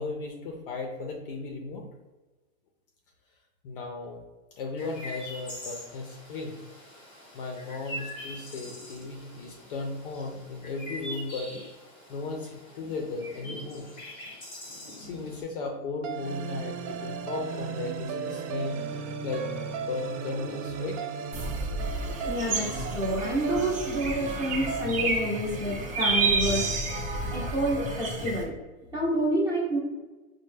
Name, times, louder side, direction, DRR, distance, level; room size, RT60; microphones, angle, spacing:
voice 1, 0.0-1.9 3.6-4.2 4.5-6.6 7.3-11.5 12.1-13.9 15.0-18.8 19.2-21.1, left 3 dB, 40° left, 2 dB, 0.4 m, -36 dB
Chirp tweet, 4.8-15.4, equal, 15° left, 0.8 m, -43 dB
sound 1, 16.0-26.3, right 6 dB, 60° right, 0.5 m, -36 dB
sound 2, 21.3-28.4, right 3 dB, 45° right, 1.0 m, -30 dB
voice 2, 22.3-26.7 27.3-28.5 28.9-29.8, right 1 dB, 10° right, -6 dB, 0.6 m, -28 dB
4.2 x 2.1 x 3.2 m, 1.2 s
supercardioid pair, 165°, 43 cm